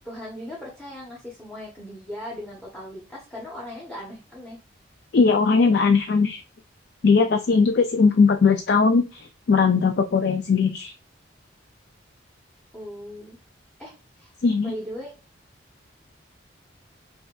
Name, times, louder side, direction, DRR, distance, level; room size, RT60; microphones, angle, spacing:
voice 1, 0.0-4.6 12.7-13.4 13.8-14.3 14.6-15.1, equal, 5° left, -3 dB, 1.0 m, -38 dB
voice 2, 5.1-6.4 7.0-10.9 14.4-14.7, left 4 dB, 55° left, 7 dB, 0.4 m, -19 dB
5.4 x 2.6 x 2.3 m, 0.30 s
head